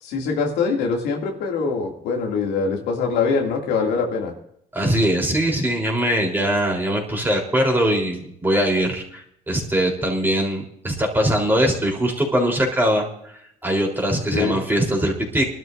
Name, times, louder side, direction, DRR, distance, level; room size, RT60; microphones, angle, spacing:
voice 1, 0.0-4.3 14.3-14.6, left 5 dB, 85° left, 1 dB, 2.4 m, -23 dB
voice 2, 4.7-13.1 13.6-15.5, equal, 10° right, -1 dB, 3.6 m, -21 dB
24.0 x 12.5 x 2.6 m, 0.70 s
cardioid pair, 110°, 17 cm